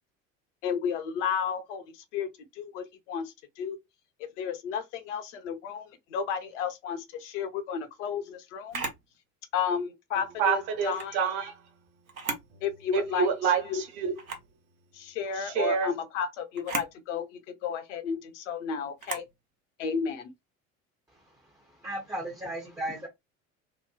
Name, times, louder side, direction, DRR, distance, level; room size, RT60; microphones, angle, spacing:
voice 1, 0.6-1.8 2.1-2.3 2.5-3.8 4.4-8.8 9.5-10.3 10.8-11.0 12.6-13.3 14.9-17.3 17.6-19.2 19.8-20.3, left 7 dB, 60° left, 0.7 m, -32 dB
Camera, 8.7-9.1 10.8-11.1 12.1-12.5 13.0-13.1 14.2-14.5 16.6-16.9 19.0-19.3, right 4 dB, 90° right, 0.6 m, -35 dB
voice 2, 10.1-11.9 12.5-12.6 12.9-14.4 15.3-15.9, right 6 dB, 55° right, 0.9 m, -28 dB
voice 3, 21.8-23.1, right 1 dB, 10° right, 0.4 m, -35 dB
2.8 x 2.1 x 2.2 m
figure-of-eight pair, 65°, 41 cm